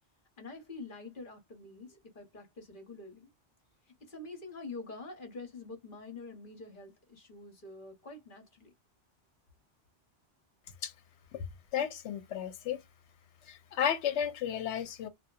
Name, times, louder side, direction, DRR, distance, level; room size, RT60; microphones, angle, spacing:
voice 1, 0.4-3.3 4.0-8.7, left 3 dB, 50° left, 1.0 m, -46 dB
voice 2, 11.7-12.8 13.5-15.1, left 9 dB, 75° left, 0.9 m, -33 dB
2.7 x 2.3 x 2.2 m
omnidirectional pair, 1.2 m